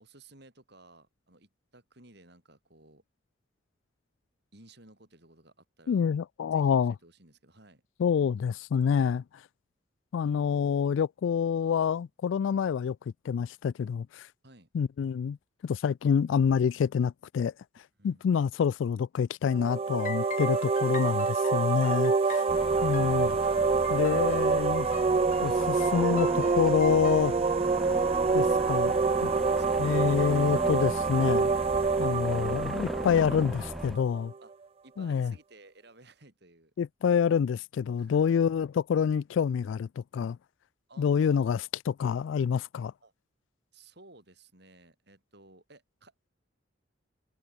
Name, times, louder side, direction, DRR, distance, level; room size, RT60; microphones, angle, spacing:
voice 1, 0.0-3.0 4.5-6.0 6.5-7.8 14.4-14.7 18.0-18.2 22.3-22.6 29.3-30.2 34.4-34.5 34.8-36.7 38.0-38.3 40.9-41.7 43.0-43.1 43.7-46.3, right 2 dB, 60° right, 6.5 m, -56 dB
voice 2, 5.9-6.9 8.0-9.2 10.1-13.0 13.2-14.3 14.7-15.4 15.6-17.5 18.0-22.4 22.8-23.4 23.9-24.9 25.4-27.3 28.3-28.9 29.2-29.3 29.8-31.5 32.0-34.3 35.0-35.3 36.8-40.4 41.0-42.9, left 7 dB, 80° left, 0.3 m, -27 dB
sound 1, 19.5-34.2, right 4 dB, 30° right, 0.3 m, -27 dB
sound 2, 20.0-27.4, left 6 dB, 40° left, 0.7 m, -43 dB
sound 3, 22.5-34.0, equal, ahead, 0.8 m, -38 dB
head